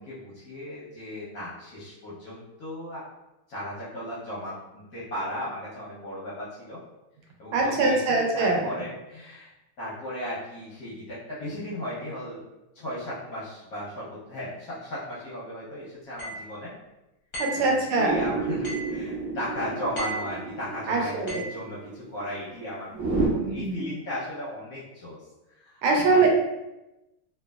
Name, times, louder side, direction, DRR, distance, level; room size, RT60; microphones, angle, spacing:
voice 1, 0.0-3.0 3.5-6.8 7.4-9.5 9.8-12.5 12.7-16.7 17.6-25.2 25.6-25.8 26.1-26.2, equal, 60° left, -8 dB, 1.0 m, -36 dB
voice 2, 7.5-8.8 17.4-18.2 20.9-21.4 23.0-23.8 25.8-26.3, right 3 dB, 80° right, 0 dB, 1.5 m, -23 dB
sound 1, 16.2-16.4 17.3-17.6 18.6-19.0 19.9-20.3 21.3-21.6, right 1 dB, 35° left, 0.8 m, -34 dB
sound 2, 18.1-23.3, right 3 dB, 40° right, 0.9 m, -31 dB
3.2 x 2.9 x 2.3 m, 0.96 s
omnidirectional pair, 2.4 m